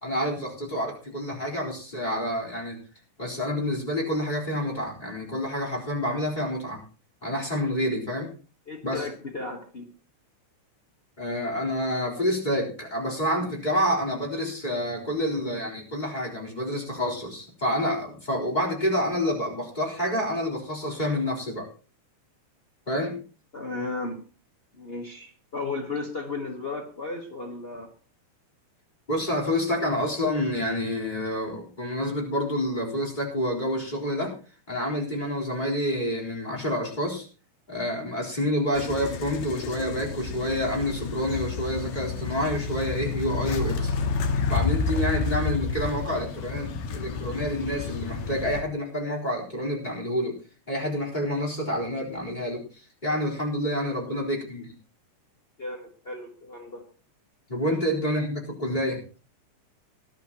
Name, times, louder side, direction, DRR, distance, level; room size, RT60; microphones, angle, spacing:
voice 1, 0.0-2.8 3.2-6.8 7.2-8.3 8.8-9.1 11.2-21.7 22.9-23.2 29.1-34.3 34.7-37.3 37.7-43.9 44.5-50.4 50.7-54.7 57.5-59.0, equal, 15° left, -3 dB, 3.8 m, -28 dB
voice 2, 8.7-9.9 23.5-24.2 24.8-27.9 53.8-53.9 55.6-56.8 57.6-57.8, left 3 dB, 60° left, 2 dB, 0.6 m, -35 dB
sound 1, 38.8-48.6, left 5 dB, 90° left, 2.9 m, -30 dB
19.5 x 11.5 x 3.0 m, 0.37 s
omnidirectional pair, 3.7 m